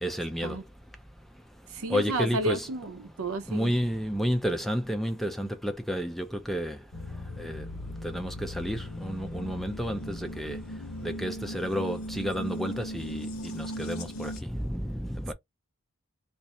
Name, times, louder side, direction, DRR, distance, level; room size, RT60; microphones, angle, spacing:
voice 1, 0.0-0.6 1.9-2.7 3.5-6.8 7.4-7.7 8.0-10.6 11.0-15.3, equal, ahead, 0.4 m, -31 dB
voice 2, 1.7-3.7, right 1 dB, 80° right, 0.7 m, -32 dB
sound 1, 6.9-14.4, equal, 75° left, 0.9 m, -38 dB
2.6 x 2.4 x 4.1 m
head